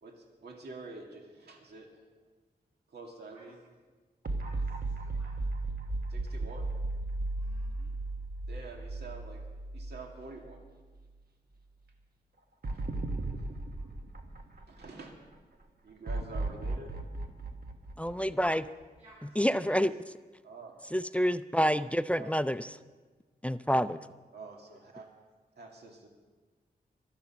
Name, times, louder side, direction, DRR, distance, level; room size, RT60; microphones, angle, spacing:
voice 1, 0.0-1.9 2.9-3.6 6.1-6.7 8.5-9.4 9.7-10.6 14.7-15.1 15.8-16.9 20.4-20.8 22.1-22.3 24.3-25.1 25.6-26.1, right 3 dB, 85° right, 1 dB, 2.2 m, -47 dB
sound 1, 4.2-10.6 11.0-11.1 12.6-15.1 16.1-18.8, right 2 dB, 65° right, 1.4 m, -36 dB
voice 2, 4.4-5.3 7.3-7.9 13.7-13.9 19.0-19.8, right 1 dB, 45° right, -6 dB, 5.9 m, -59 dB
voice 3, 18.0-18.7 19.4-19.9 20.9-22.8 23.4-24.0, equal, 10° left, 13 dB, 0.4 m, -28 dB
24.5 x 8.3 x 5.9 m, 1.3 s
wide cardioid pair, 120°, 16 cm